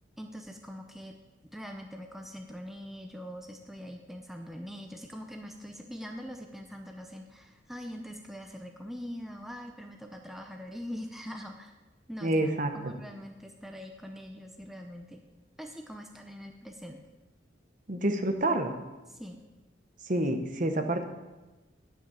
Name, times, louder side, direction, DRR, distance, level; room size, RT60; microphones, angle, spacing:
voice 1, 0.2-1.2 1.5-11.7 12.1-15.2 15.6-17.0 19.1-19.4, equal, ahead, 3 dB, 0.7 m, -43 dB
voice 2, 12.2-13.0 17.9-18.7 20.0-21.0, right 1 dB, 45° right, 7 dB, 1.0 m, -28 dB
10.5 x 6.2 x 7.0 m, 1.1 s
head